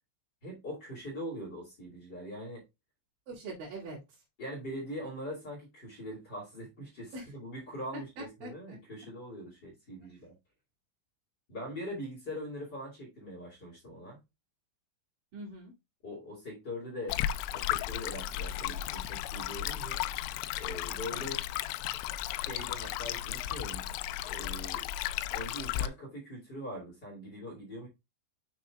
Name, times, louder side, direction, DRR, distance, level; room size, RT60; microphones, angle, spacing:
voice 1, 0.4-2.6 4.4-10.3 11.5-14.2 16.0-17.2 17.5-20.0 20.6-21.4 22.3-23.8 24.2-24.9 25.3-27.9, equal, 30° left, 2.1 m, -42 dB
voice 2, 3.3-4.2 7.1-7.3 7.9-8.8 15.3-15.7 20.9-21.3, right 2 dB, 50° right, 3.9 m, -44 dB
Stream, 17.1-25.9, left 13 dB, 85° left, 3.0 m, -34 dB
7.2 x 6.7 x 2.4 m
omnidirectional pair, 5.8 m